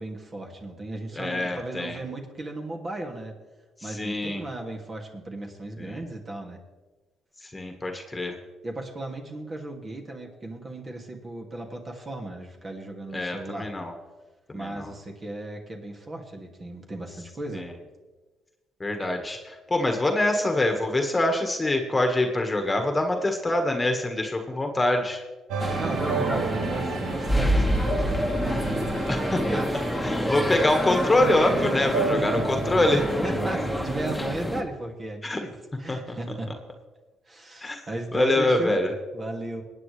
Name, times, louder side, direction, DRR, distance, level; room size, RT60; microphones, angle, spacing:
voice 1, 0.0-3.3 3.8-6.6 8.6-13.7 14.5-17.7 25.5-29.7 30.0-30.6 32.0-32.4 32.9-35.5 35.8-36.5 37.3-38.8 39.1-39.6, right 2 dB, 35° right, 1 dB, 2.4 m, -36 dB
voice 2, 1.1-2.0 3.8-4.4 5.8-6.0 7.5-8.3 13.1-13.9 14.5-14.9 17.5-17.7 18.8-25.2 29.1-33.0 35.2-35.4 35.9-36.0 37.6-37.8 38.1-38.9, left 1 dB, 20° left, 4 dB, 1.7 m, -25 dB
sound 1, 25.5-30.7 31.2-34.2, right 5 dB, 80° right, 1.1 m, -33 dB
sound 2, 25.6-34.6, equal, ahead, 1.7 m, -27 dB
21.5 x 9.1 x 3.3 m, 1.2 s
supercardioid pair, 70°, 0 cm